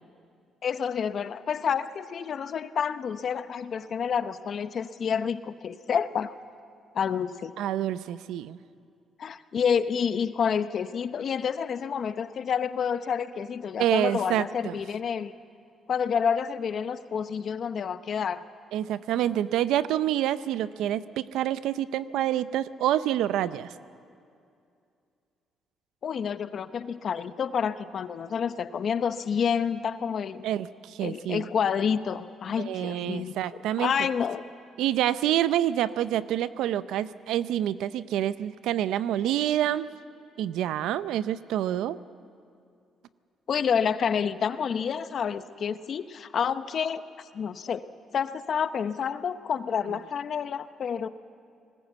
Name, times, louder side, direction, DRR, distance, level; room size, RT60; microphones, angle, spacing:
voice 1, 0.6-6.4 6.9-7.5 9.2-15.3 15.9-18.4 26.0-30.4 31.0-33.4 33.8-34.4 43.5-47.0 47.3-47.9 48.1-51.1, left 7 dB, 55° left, 12 dB, 0.8 m, -29 dB
voice 2, 7.6-8.6 13.8-14.8 18.7-23.7 30.4-31.4 32.6-33.9 34.8-39.9 40.4-42.0, right 12 dB, 90° right, 15 dB, 0.5 m, -27 dB
20.5 x 19.0 x 8.2 m, 2.4 s
cardioid pair, 90°, 0 cm